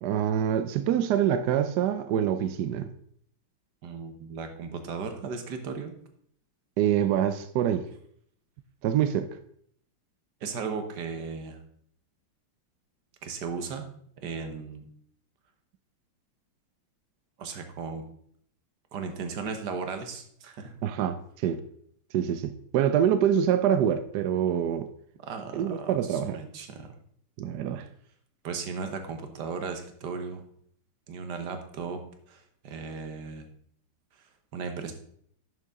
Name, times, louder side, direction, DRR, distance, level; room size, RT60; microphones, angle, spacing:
voice 1, 0.0-2.9 6.8-7.9 8.8-9.3 20.8-21.6 22.1-24.9 25.5-26.4 27.4-27.9, right 9 dB, 75° right, 0.9 m, -25 dB
voice 2, 3.8-5.9 10.4-11.6 13.2-13.8 14.2-14.9 17.4-18.0 18.9-20.7 25.2-26.9 28.4-30.4 31.1-32.0 32.3-33.5 34.5-34.9, right 5 dB, 55° right, 1.6 m, -36 dB
11.0 x 6.7 x 3.6 m
omnidirectional pair, 2.4 m